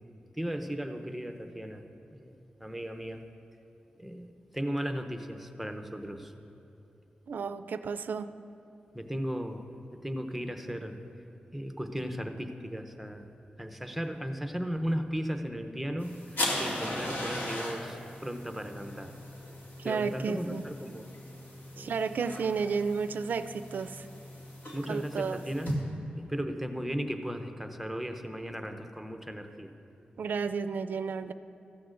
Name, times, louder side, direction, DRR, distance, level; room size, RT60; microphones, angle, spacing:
voice 1, 0.4-1.8 2.1-3.2 4.0-6.3 8.9-9.6 9.9-11.0 11.5-13.3 13.6-19.1 19.8-21.1 21.7-22.0 24.7-25.7 26.2-29.7, equal, 5° right, 6 dB, 0.7 m, -36 dB
voice 2, 7.3-8.3 19.8-20.7 21.8-24.1 24.9-25.4 30.2-31.3, right 5 dB, 70° right, 11 dB, 0.4 m, -32 dB
sound 1, 16.0-25.7, left 1 dB, 80° left, 2.2 m, -38 dB
14.5 x 12.5 x 2.5 m, 2.7 s
wide cardioid pair, 90°, 3 cm